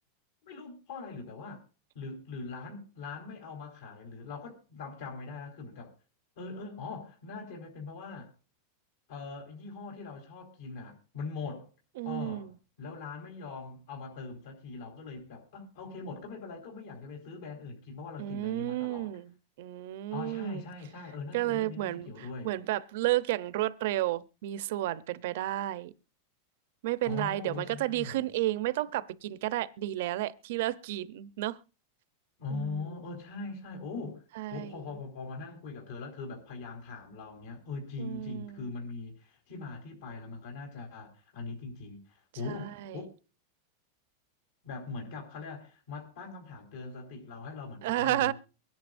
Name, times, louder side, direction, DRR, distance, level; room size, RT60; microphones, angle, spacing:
voice 1, 0.4-1.6 1.9-5.9 6.4-8.3 9.1-11.7 12.0-12.5 12.8-19.1 20.1-22.5 27.0-28.3 32.4-34.2 34.5-43.1 44.6-48.3, left 4 dB, 70° left, 4.3 m, -41 dB
voice 2, 12.0-12.5 18.2-20.6 21.3-25.9 26.8-31.6 32.5-33.1 34.4-34.8 38.0-38.7 42.4-43.0 47.8-48.3, right 15 dB, 65° right, 0.7 m, -32 dB
24.0 x 10.5 x 2.6 m
supercardioid pair, 155°, 0 cm